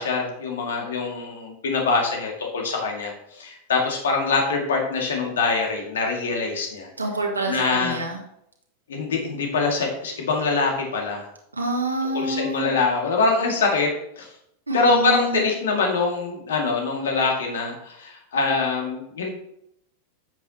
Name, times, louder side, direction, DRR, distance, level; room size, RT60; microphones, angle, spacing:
voice 1, 0.0-6.9 7.5-8.0 8.9-11.3 12.1-13.9 14.2-14.3 14.7-19.3, left 4 dB, 65° left, 1 dB, 2.2 m, -24 dB
voice 2, 7.0-8.2 11.5-12.7 14.7-15.5, right 2 dB, 80° right, 0 dB, 2.3 m, -27 dB
10.5 x 8.2 x 2.9 m, 0.76 s
figure-of-eight pair, 90°, 0 cm